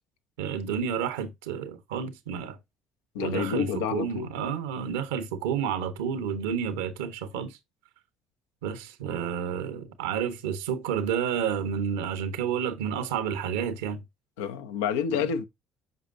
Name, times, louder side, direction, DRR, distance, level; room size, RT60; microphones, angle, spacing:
voice 1, 0.4-2.6 3.2-7.5 8.6-14.0 15.1-15.2, right 7 dB, 90° right, 1.0 m, -30 dB
voice 2, 3.1-4.3 14.4-15.4, left 7 dB, 90° left, 0.7 m, -29 dB
8.0 x 5.3 x 2.6 m
supercardioid pair, 65°, 0 cm